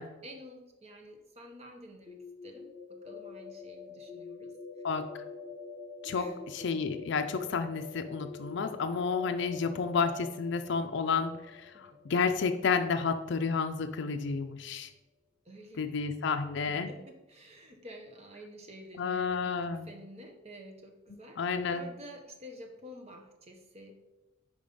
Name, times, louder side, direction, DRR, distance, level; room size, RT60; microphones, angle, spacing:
voice 1, 0.2-4.6 6.1-6.4 11.7-11.9 15.4-15.8 16.9-19.5 19.9-23.9, equal, 30° right, 3 dB, 0.9 m, -50 dB
sound 1, 2.1-13.8, left 4 dB, 10° right, 1.2 m, -46 dB
voice 2, 4.8-5.2 6.0-14.9 15.8-16.9 19.0-19.9 21.4-21.8, left 5 dB, 60° left, 9 dB, 0.4 m, -31 dB
5.3 x 5.1 x 5.1 m, 1.0 s
head